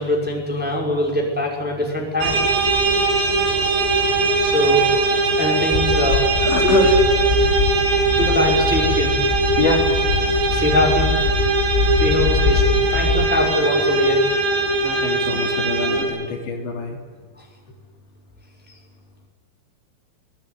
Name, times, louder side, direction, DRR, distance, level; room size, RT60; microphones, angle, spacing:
voice 1, 0.0-2.4 4.4-4.8 5.4-6.2 6.6-6.9 8.2-9.3 10.5-11.1 12.0-14.2, left 1 dB, ahead, -1 dB, 4.7 m, -22 dB
sound 1, 2.2-16.0, right 3 dB, 85° right, 6.7 m, -20 dB
sound 2, 5.7-13.3, left 6 dB, 90° left, 3.9 m, -23 dB
voice 2, 6.4-7.1 9.6-9.9 14.8-17.0, left 4 dB, 70° left, 2 dB, 5.3 m, -25 dB
24.0 x 20.5 x 9.7 m, 1.5 s
omnidirectional pair, 5.4 m